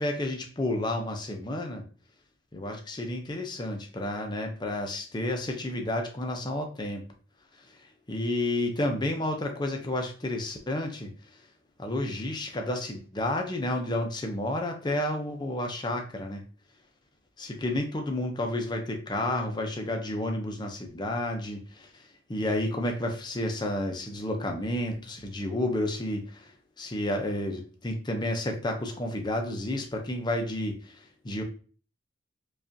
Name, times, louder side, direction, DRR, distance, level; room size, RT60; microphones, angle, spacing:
voice 1, 0.0-1.8 2.5-7.0 7.6-11.4 11.8-16.4 17.4-26.5 26.8-31.4, left 1 dB, 20° left, 3 dB, 0.5 m, -31 dB
5.1 x 2.4 x 2.6 m, 0.40 s
head